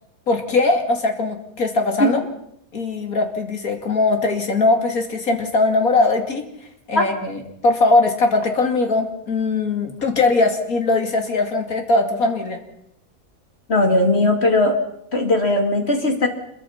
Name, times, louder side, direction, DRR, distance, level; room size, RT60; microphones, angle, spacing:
voice 1, 0.3-2.2 2.7-6.4 6.9-12.6, left 3 dB, 75° left, 5 dB, 3.0 m, -20 dB
voice 2, 13.7-14.8 15.1-16.3, left 2 dB, 45° left, 4 dB, 2.7 m, -18 dB
26.5 x 22.5 x 5.8 m, 0.76 s
omnidirectional pair, 1.5 m